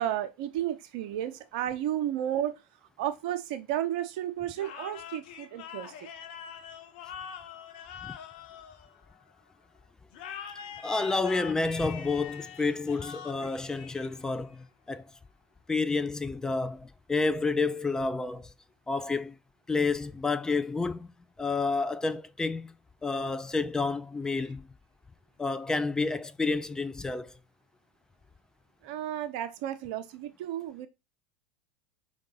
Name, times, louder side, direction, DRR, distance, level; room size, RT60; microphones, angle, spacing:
voice 1, 0.0-2.6 3.0-5.9 28.8-30.9, right 11 dB, 60° right, 0.8 m, -32 dB
trying to keep head out of water drowing in misrey, 4.5-9.4 10.1-14.5, left 8 dB, 65° left, 0.7 m, -44 dB
voice 2, 10.8-15.1 15.7-18.5 18.9-19.4 19.7-21.1 21.4-22.7 23.0-24.7 25.4-27.3, left 3 dB, 10° left, 0.4 m, -30 dB
4.8 x 2.6 x 3.8 m
hypercardioid pair, 85°, 5 cm